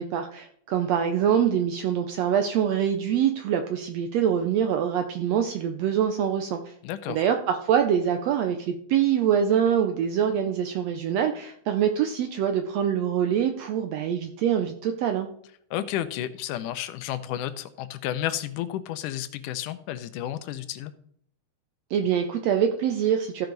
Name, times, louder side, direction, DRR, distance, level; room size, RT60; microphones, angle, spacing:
voice 1, 0.0-6.7 7.1-15.3 21.9-23.5, right 8 dB, 80° right, 6 dB, 1.5 m, -24 dB
voice 2, 6.8-7.3 15.7-20.9, left 12 dB, 85° left, 12 dB, 2.1 m, -32 dB
14.5 x 5.7 x 3.9 m, 0.65 s
omnidirectional pair, 3.7 m